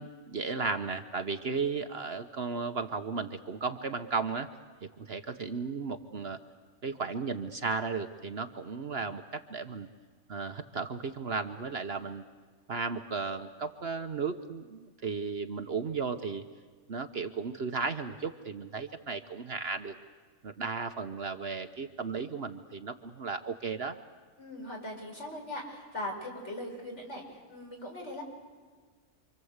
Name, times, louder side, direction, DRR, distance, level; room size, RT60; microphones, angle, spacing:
voice 1, 0.0-4.5 4.8-6.4 6.8-9.9 10.3-12.2 12.7-16.4 16.9-19.9 20.4-24.0, right 4 dB, 50° right, 8 dB, 1.1 m, -35 dB
voice 2, 24.4-28.2, left 1 dB, 55° left, 0 dB, 5.9 m, -40 dB
28.0 x 25.5 x 8.1 m, 1.5 s
omnidirectional pair, 1.4 m